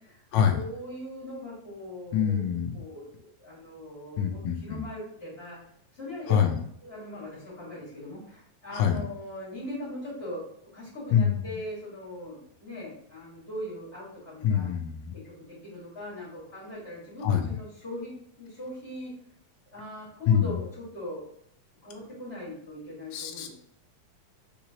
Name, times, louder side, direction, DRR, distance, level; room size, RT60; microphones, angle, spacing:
voice 1, 0.5-5.6 5.9-6.4 6.8-10.4 10.7-14.7 15.1-19.1 19.7-21.3 21.8-23.5, left 1 dB, 30° left, -9 dB, 1.1 m, -40 dB
voice 2, 2.1-2.7 4.2-4.8 6.3-6.6 8.7-9.0 11.1-11.4 14.4-15.1 17.2-17.5 20.3-20.6 23.1-23.5, left 8 dB, 85° left, 3 dB, 1.6 m, -25 dB
5.8 x 2.9 x 2.8 m, 0.70 s
omnidirectional pair, 3.9 m